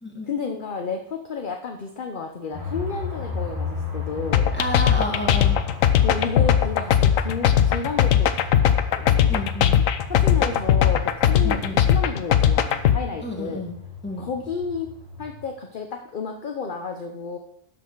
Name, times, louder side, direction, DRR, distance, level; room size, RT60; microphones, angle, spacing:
voice 1, 0.3-4.5 6.0-8.3 8.6-9.4 10.1-13.6 14.2-14.9 15.2-17.4, left 5 dB, 45° left, 4 dB, 0.8 m, -31 dB
sound 1, 2.5-15.4, left 3 dB, 40° right, 4.6 m, -34 dB
sound 2, 4.3-13.0, left 9 dB, 85° left, 1.1 m, -18 dB
voice 2, 4.5-5.6 9.3-9.8 11.4-11.9 13.2-13.8 14.0-14.3, left 1 dB, 10° left, -1 dB, 1.9 m, -30 dB
12.5 x 5.8 x 4.6 m, 0.72 s
omnidirectional pair, 1.3 m